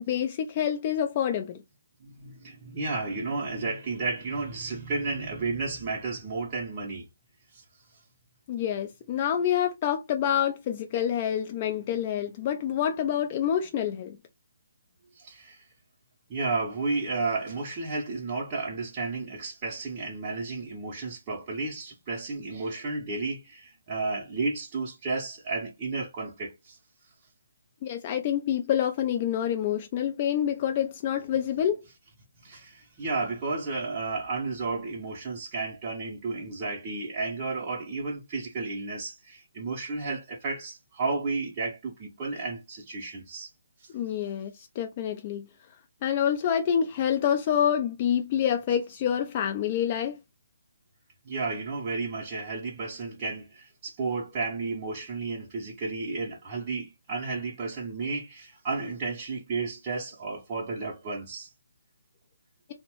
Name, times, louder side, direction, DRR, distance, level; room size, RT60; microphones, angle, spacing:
voice 1, 0.0-1.6 8.5-14.2 27.8-31.8 43.9-45.5 46.0-50.2, left 9 dB, 30° left, 0.3 m, -27 dB
voice 2, 2.0-7.0 7.5-7.6 15.2-15.7 16.3-26.8 32.4-43.5 43.8-43.9 51.2-61.5, right 3 dB, 25° right, 0.6 m, -32 dB
2.8 x 2.0 x 2.9 m
figure-of-eight pair, 140°, 0 cm